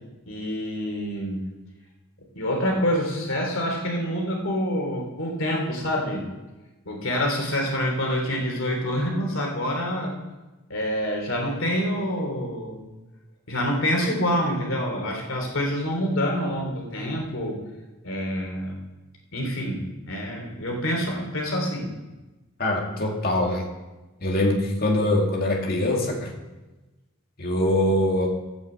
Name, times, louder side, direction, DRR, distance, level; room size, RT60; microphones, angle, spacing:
voice 1, 0.3-1.4 2.3-6.3 6.8-10.2 10.7-12.9 13.5-17.6 18.0-18.8 19.3-21.9, equal, 60° left, 1 dB, 3.1 m, -27 dB
voice 2, 22.6-23.7 24.2-26.3 27.4-28.3, left 1 dB, 45° left, 1 dB, 2.0 m, -23 dB
11.0 x 8.5 x 7.8 m, 1.1 s
head